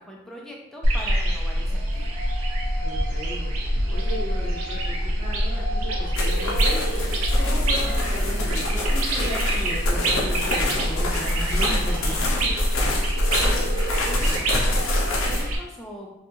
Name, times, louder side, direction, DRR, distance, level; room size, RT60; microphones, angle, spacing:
voice 1, 0.0-2.1 14.1-16.1, equal, ahead, -2 dB, 0.3 m, -40 dB
sound 1, 0.8-15.6, equal, 70° right, 0.5 m, -24 dB
voice 2, 2.8-3.5 3.9-6.8 7.4-12.5, equal, 20° right, -14 dB, 0.9 m, -36 dB
sound 2, 6.2-15.5, left 2 dB, 60° left, 0.5 m, -29 dB
2.8 x 2.3 x 2.6 m, 0.95 s
head